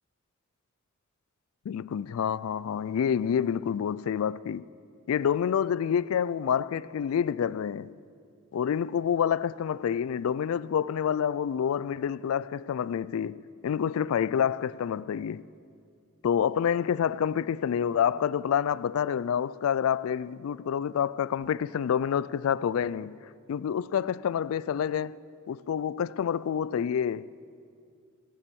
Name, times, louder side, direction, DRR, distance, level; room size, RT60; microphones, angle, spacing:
voice 1, 1.7-4.7 5.1-8.0 8.5-15.5 16.2-27.3, left 8 dB, 80° left, 0.3 m, -28 dB
14.5 x 10.0 x 7.0 m
head